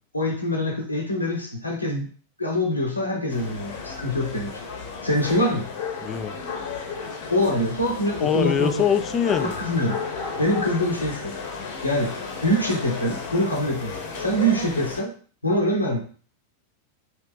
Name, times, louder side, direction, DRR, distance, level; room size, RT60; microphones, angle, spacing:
voice 1, 0.1-2.1 2.4-4.6 5.0-5.6 7.3-8.8 9.3-10.0 10.4-11.3 11.8-12.1 12.4-13.9 14.2-15.1 15.4-16.0, equal, 85° left, 0 dB, 0.8 m, -24 dB
sound 1, 3.3-15.0, left 5 dB, 55° left, 0.9 m, -33 dB
voice 2, 6.0-6.3 8.2-9.5, left 8 dB, 25° left, 10 dB, 0.3 m, -23 dB
3.2 x 2.7 x 3.5 m, 0.42 s
figure-of-eight pair, 90°, 0 cm